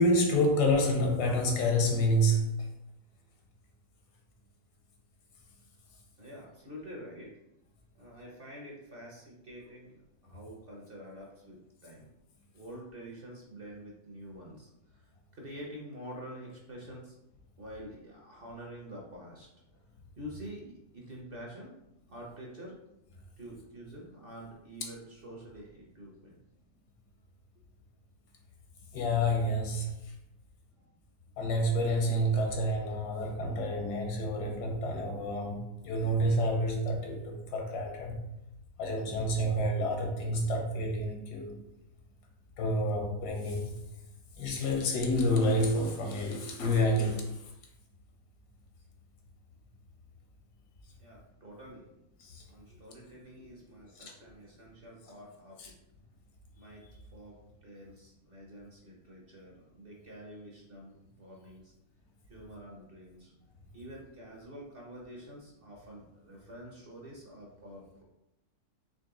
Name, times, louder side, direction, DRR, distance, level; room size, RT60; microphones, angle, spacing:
voice 1, 0.0-2.7 28.9-30.1 31.4-38.2 38.8-41.6 42.6-43.8 44.4-47.5 52.2-52.4 54.0-54.1 55.6-55.7, equal, 80° left, 2 dB, 1.4 m, -29 dB
voice 2, 6.2-7.4 7.9-12.1 12.5-17.1 17.6-19.5 20.2-21.7 22.1-22.8 23.4-26.4 51.0-52.0 52.5-55.8 56.5-56.9 57.1-61.7 62.3-63.3 63.7-68.0, equal, 45° right, -2 dB, 0.8 m, -47 dB
4.0 x 3.1 x 3.7 m, 0.86 s
omnidirectional pair, 1.7 m